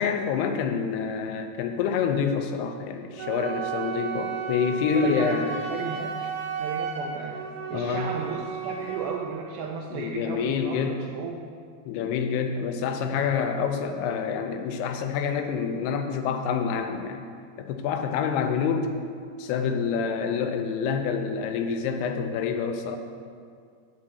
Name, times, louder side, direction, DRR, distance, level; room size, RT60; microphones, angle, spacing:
voice 1, 0.0-5.5 7.7-8.1 9.9-11.0 11.9-17.2 17.6-19.0 19.4-23.0, left 6 dB, 90° left, 6 dB, 2.7 m, -27 dB
Wind instrument woodwind instrument, 3.2-9.2, right 6 dB, 60° right, 1.6 m, -33 dB
voice 2, 4.9-7.4 7.7-11.5 13.1-13.2, right 5 dB, 85° right, 1 dB, 2.2 m, -34 dB
8.6 x 8.4 x 4.2 m, 2.2 s
omnidirectional pair, 4.7 m